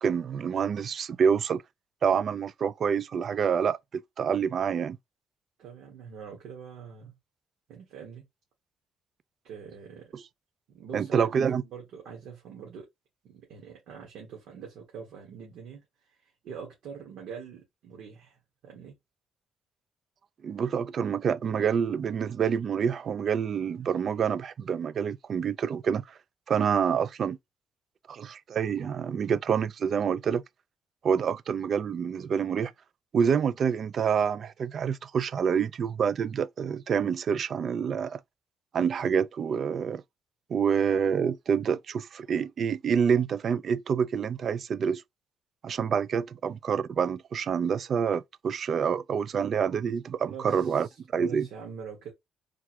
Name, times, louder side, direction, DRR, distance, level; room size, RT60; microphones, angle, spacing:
voice 1, 0.0-1.6 2.0-5.0 10.1-10.2 10.9-11.6 20.4-26.0 26.5-27.4 28.1-30.4 31.0-32.7 33.1-38.2 38.7-40.0 40.5-45.0 45.6-50.9 51.1-51.5, right 7 dB, 55° right, 0.3 m, -27 dB
voice 2, 5.6-7.1 7.7-8.3 9.4-10.1 10.7-12.9 13.2-18.9 50.3-52.1, right 6 dB, 80° right, 1.6 m, -44 dB
3.6 x 2.3 x 4.4 m
cardioid pair, 90°, 0 cm